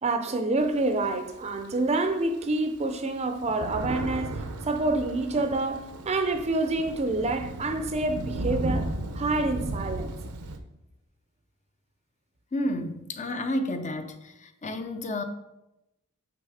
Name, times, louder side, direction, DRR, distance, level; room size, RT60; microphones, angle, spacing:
voice 1, 0.0-10.1, right 2 dB, 30° right, 0.5 m, -27 dB
Thunder, 0.6-1.9 2.4-2.5 2.8-10.6, right 2 dB, 80° right, 0.7 m, -35 dB
voice 2, 12.5-15.2, left 1 dB, 30° left, 0.5 m, -31 dB
8.8 x 3.6 x 4.9 m
head